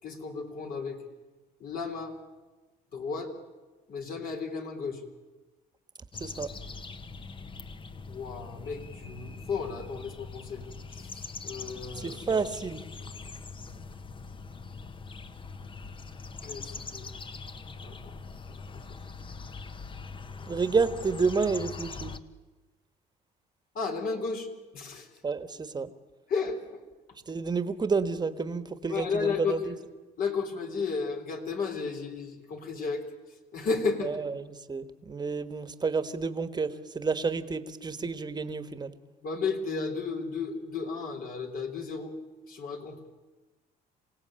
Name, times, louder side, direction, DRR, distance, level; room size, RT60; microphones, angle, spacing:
voice 1, 0.0-1.0 1.6-2.2 2.9-3.3 3.9-5.0 8.1-10.6 10.9-12.2 16.4-17.1 17.8-18.1 18.7-18.8 20.3-20.4 23.7-24.5 24.7-25.1 26.3-26.8 28.8-29.8 30.2-33.0 33.5-34.2 39.2-42.1 42.5-43.0, left 5 dB, 55° left, 4 dB, 3.8 m, -33 dB
sound 1, 6.1-22.2, left 4 dB, 30° left, 1.1 m, -42 dB
voice 2, 12.0-12.8 20.5-22.1 25.2-25.9 27.3-29.7 34.0-34.3 34.7-38.9, right 4 dB, 25° right, 11 dB, 1.4 m, -30 dB
27.5 x 17.5 x 8.9 m, 1.2 s
cardioid pair, 110°, 17 cm